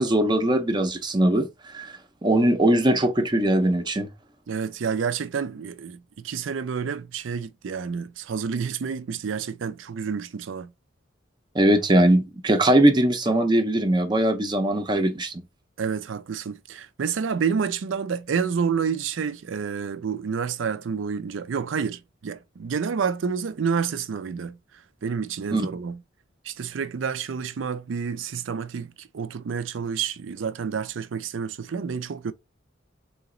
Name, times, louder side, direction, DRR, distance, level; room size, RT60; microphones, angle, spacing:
voice 1, 0.0-1.5 1.7-4.1 11.5-15.3 25.5-25.6, right 1 dB, 25° right, 0.5 m, -21 dB
voice 2, 4.5-10.7 15.8-24.6 25.0-26.0 26.4-32.3, right 6 dB, 80° right, 0.4 m, -29 dB
3.9 x 2.9 x 3.7 m
head